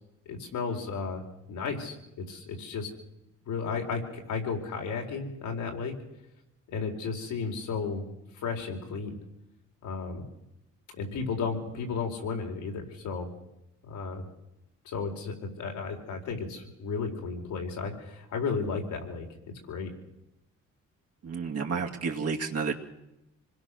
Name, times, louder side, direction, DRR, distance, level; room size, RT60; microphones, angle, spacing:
voice 1, 0.3-1.2 1.5-2.9 3.5-5.9 6.7-8.0 8.3-9.1 9.8-10.3 11.0-13.3 13.8-14.2 14.8-19.3 19.7-19.9, left 5 dB, 80° left, 2 dB, 4.5 m, -33 dB
voice 2, 21.2-22.7, right 5 dB, 55° right, 0 dB, 2.6 m, -31 dB
26.0 x 21.0 x 6.6 m, 0.87 s
cardioid pair, 90°, 30 cm